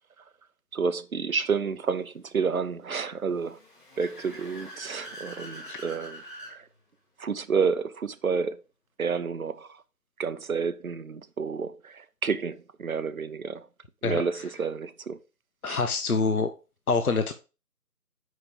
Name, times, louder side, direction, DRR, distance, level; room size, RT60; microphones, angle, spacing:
voice 1, 0.7-3.6 4.0-6.2 6.5-6.6 7.2-8.6 9.0-9.7 10.2-13.7 14.0-15.2 15.7-15.8, right 5 dB, 60° right, 0.8 m, -30 dB
Car / Accelerating revving vroom, 3.3-6.6, equal, 30° left, 2.4 m, -43 dB
voice 2, 15.6-16.5 16.9-17.3, left 4 dB, 65° left, 0.9 m, -25 dB
6.2 x 5.3 x 5.2 m
figure-of-eight pair, 165°, 47 cm